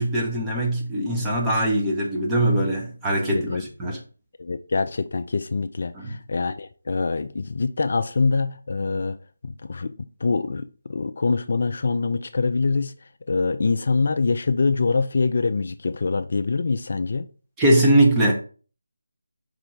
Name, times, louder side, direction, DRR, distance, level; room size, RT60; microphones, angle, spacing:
voice 1, 0.0-4.0 5.9-6.1 17.6-18.3, right 1 dB, 10° right, 1.1 m, -21 dB
voice 2, 4.4-9.2 9.4-12.9 13.3-17.3, left 4 dB, 50° left, 0.4 m, -24 dB
5.4 x 3.8 x 4.9 m
figure-of-eight pair, 160°, 0 cm